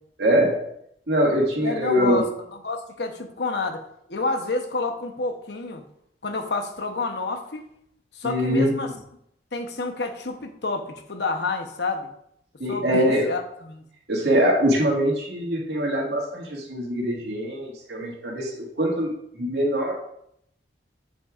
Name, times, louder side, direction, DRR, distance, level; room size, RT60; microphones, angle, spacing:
voice 1, 0.2-0.6 1.1-2.2 8.2-8.9 12.6-13.3 14.1-19.9, equal, 75° right, -2 dB, 2.0 m, -23 dB
voice 2, 1.6-2.2 2.6-3.8 4.1-5.8 6.2-7.7 8.1-8.9 9.5-12.1 12.7-13.8, left 3 dB, 75° left, 5 dB, 0.9 m, -29 dB
7.7 x 7.1 x 2.5 m, 0.73 s
head